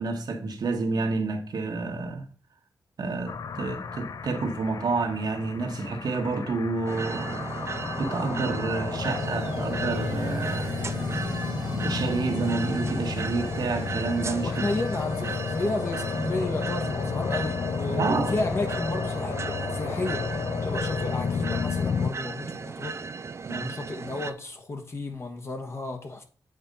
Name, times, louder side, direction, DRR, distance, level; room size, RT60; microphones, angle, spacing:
voice 1, 0.0-2.2 3.0-10.7 11.7-14.5 17.9-18.3 23.5-23.7, right 3 dB, 70° right, 1.5 m, -29 dB
sound 1, 3.3-22.1, left 6 dB, 60° left, 0.5 m, -32 dB
sound 2, 6.9-24.3, right 4 dB, 40° right, 0.5 m, -35 dB
sound 3, 8.8-18.6, left 4 dB, 80° left, 1.5 m, -47 dB
voice 2, 14.4-20.2 20.6-23.0 23.5-26.2, left 2 dB, 40° left, 1.3 m, -32 dB
8.0 x 4.3 x 5.4 m
wide cardioid pair, 140°, 7 cm